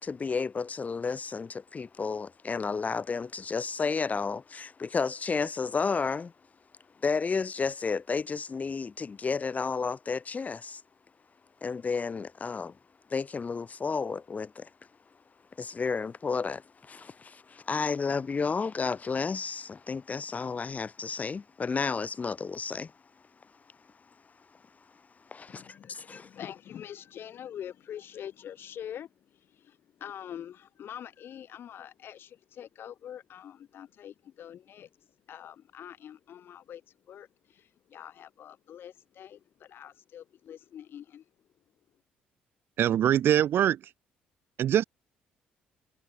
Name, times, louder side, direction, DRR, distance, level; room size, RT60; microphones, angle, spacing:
voice 1, 0.0-6.3 7.0-10.8 11.6-12.8 13.1-14.7 15.6-22.9 25.2-26.3, left 5 dB, 35° left, 2.5 m, -32 dB
voice 2, 25.5-41.2, left 10 dB, 60° left, 3.4 m, -45 dB
voice 3, 42.8-43.8 44.6-44.8, right 11 dB, 60° right, 0.6 m, -23 dB
hypercardioid pair, 55°, 4 cm